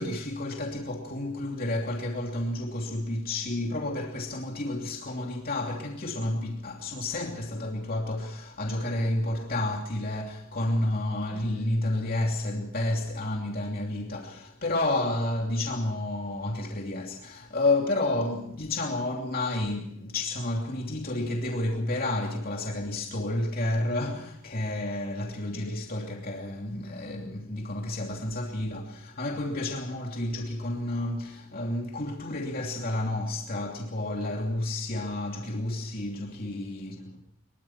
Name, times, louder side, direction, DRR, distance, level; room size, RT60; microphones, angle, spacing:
voice 1, 0.0-37.3, left 1 dB, 45° left, 2.9 m, -30 dB
24.0 x 22.0 x 5.9 m
head